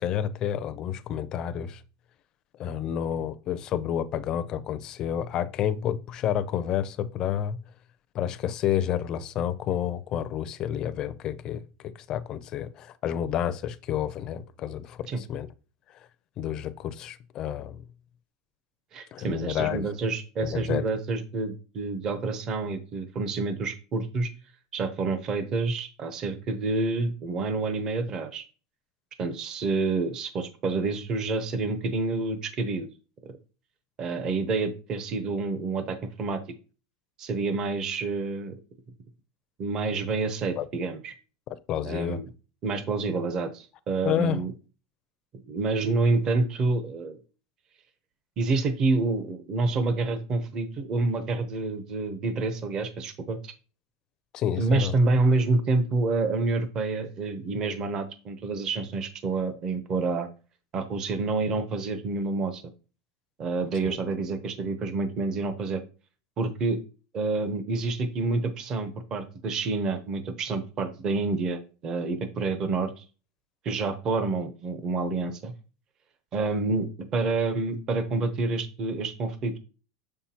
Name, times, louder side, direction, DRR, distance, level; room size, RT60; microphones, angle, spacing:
voice 1, 0.0-1.8 2.6-7.6 8.1-15.5 16.4-17.8 19.1-19.9 20.4-20.9 40.6-40.7 41.7-42.2 44.0-44.4 54.3-54.9 63.8-64.0, left 10 dB, 35° left, 0.5 m, -30 dB
voice 2, 18.9-24.3 24.7-28.4 29.2-32.9 34.0-36.4 37.2-38.5 39.6-41.1 41.8-42.3 42.6-44.5 45.5-47.2 48.4-53.5 54.6-60.3 60.7-62.6 63.4-65.8 66.4-66.8 67.1-73.0 73.6-75.5 76.3-76.9 77.1-79.6, right 3 dB, 30° right, 0.8 m, -28 dB
6.7 x 5.7 x 2.9 m
supercardioid pair, 150°, 2 cm